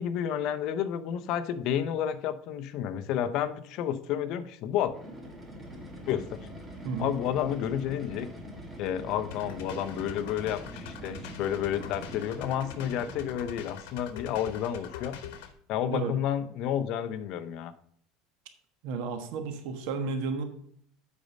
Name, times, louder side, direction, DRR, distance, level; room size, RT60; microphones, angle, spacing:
voice 1, 0.0-4.9 6.1-6.4 7.0-8.3 8.8-15.2 15.7-17.7, left 10 dB, 50° left, 10 dB, 0.7 m, -31 dB
sound 1, 4.8-13.6, equal, 10° right, 1.4 m, -44 dB
sound 2, 9.3-15.5, left 8 dB, 85° left, 1.2 m, -44 dB
voice 2, 18.8-20.4, right 4 dB, 65° right, 7 dB, 1.3 m, -32 dB
8.4 x 5.2 x 5.3 m, 0.65 s
cardioid pair, 165°, 0 cm